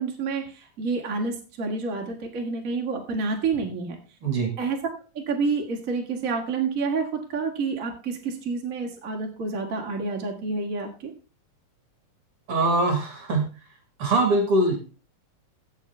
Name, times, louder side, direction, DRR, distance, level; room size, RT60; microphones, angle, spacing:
voice 1, 0.0-4.0 4.6-4.8 5.1-11.1, right 4 dB, 30° right, 1 dB, 2.0 m, -29 dB
voice 2, 4.2-4.5 12.5-13.4 14.0-14.8, right 2 dB, 45° right, 4 dB, 2.6 m, -22 dB
16.0 x 7.0 x 3.4 m, 0.33 s
omnidirectional pair, 3.8 m